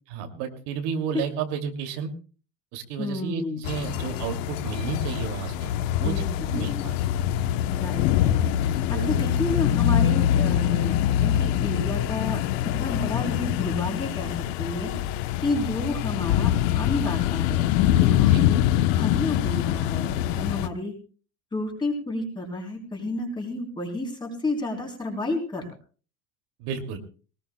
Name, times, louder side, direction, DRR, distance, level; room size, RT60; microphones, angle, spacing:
voice 1, 0.1-2.1 2.7-6.2 6.5-6.9 8.9-9.2 18.2-18.4 26.6-27.0, right 6 dB, 70° right, 4 dB, 2.8 m, -32 dB
voice 2, 3.0-3.6 6.0-6.2 6.5-6.9 7.8-10.9 11.2-18.6 18.9-20.9 21.5-25.7, left 2 dB, 10° left, 1 dB, 3.8 m, -31 dB
sound 1, 3.6-20.7, left 11 dB, 85° left, 1.1 m, -24 dB
21.5 x 19.5 x 2.3 m, 0.37 s
cardioid pair, 170°, 38 cm